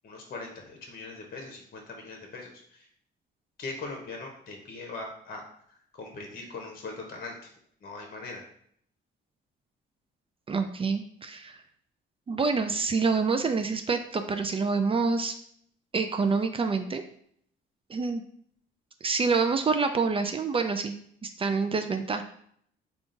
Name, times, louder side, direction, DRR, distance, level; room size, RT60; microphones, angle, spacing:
voice 1, 0.0-2.9 3.6-5.4 5.7-7.5 7.8-8.4, left 3 dB, 50° left, 1 dB, 0.8 m, -40 dB
voice 2, 10.5-11.6 12.3-15.3 15.9-17.0 17.9-18.2 19.0-22.2, right 4 dB, 30° right, 7 dB, 0.3 m, -27 dB
3.6 x 2.4 x 3.8 m, 0.65 s
cardioid pair, 90°, 20 cm